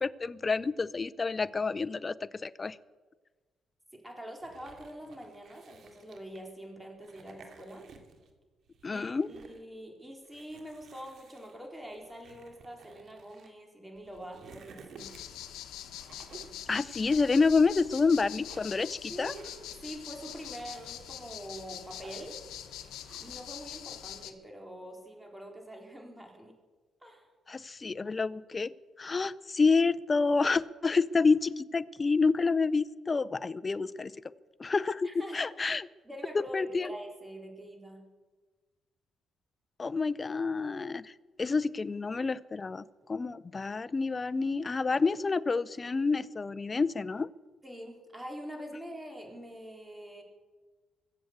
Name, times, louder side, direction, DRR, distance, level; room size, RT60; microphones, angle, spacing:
voice 1, 0.0-2.8 8.8-9.3 16.7-19.3 27.5-34.1 34.6-35.9 36.3-36.9 39.8-41.1 41.4-42.8 43.1-47.3, left 4 dB, 30° left, 16 dB, 0.6 m, -28 dB
voice 2, 3.9-7.9 8.9-15.1 19.1-22.4 23.2-26.5 27.0-27.3 35.0-35.5 36.0-38.0 47.6-50.2, equal, 10° right, 1 dB, 4.1 m, -45 dB
sound 1, 4.4-6.5 7.0-8.3 8.7-9.6 10.2-13.5 14.0-15.5 15.9-16.6 17.1-18.0 18.3-18.9 19.3-19.8 20.2-21.0 21.5-22.5 22.8-23.5, right 5 dB, 65° right, 2.4 m, -55 dB
sound 2, 15.0-24.3, left 11 dB, 85° left, 1.1 m, -44 dB
22.0 x 7.9 x 8.1 m, 1.3 s
cardioid pair, 90°, 0 cm